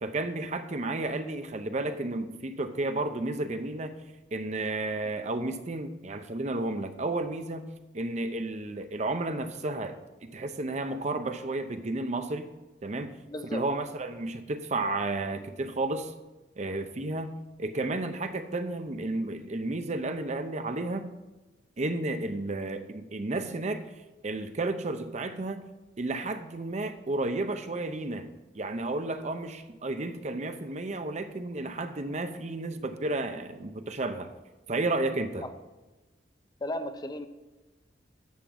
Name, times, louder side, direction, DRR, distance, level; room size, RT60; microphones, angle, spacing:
voice 1, 0.0-4.0 4.3-7.7 7.9-10.0 10.2-12.5 12.8-13.2 13.5-16.1 16.6-21.1 21.8-23.9 24.2-25.7 26.0-28.3 28.5-34.3 34.7-35.4, right 2 dB, 40° right, 9 dB, 0.7 m, -32 dB
voice 2, 13.3-13.6 35.4-35.5 36.6-37.3, left 1 dB, 25° left, 9 dB, 0.5 m, -35 dB
11.5 x 3.9 x 7.2 m, 1.1 s
head